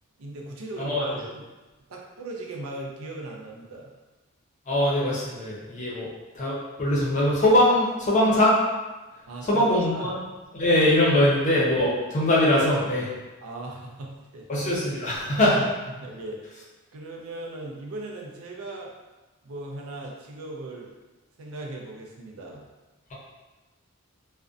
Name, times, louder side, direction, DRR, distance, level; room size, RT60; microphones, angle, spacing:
voice 1, 0.2-1.4 1.9-3.9 9.3-9.7 9.9-10.1 11.1-11.3 13.4-14.6 15.3-15.4 16.0-16.6 16.9-18.9 19.4-20.9 21.4-22.6, right 2 dB, 80° right, 0 dB, 0.4 m, -38 dB
voice 2, 0.8-1.2 4.7-6.1 6.3-8.6 9.4-10.2 10.5-13.1 14.5-15.7, left 1 dB, 35° left, -6 dB, 0.6 m, -22 dB
2.5 x 2.1 x 2.4 m, 1.2 s
head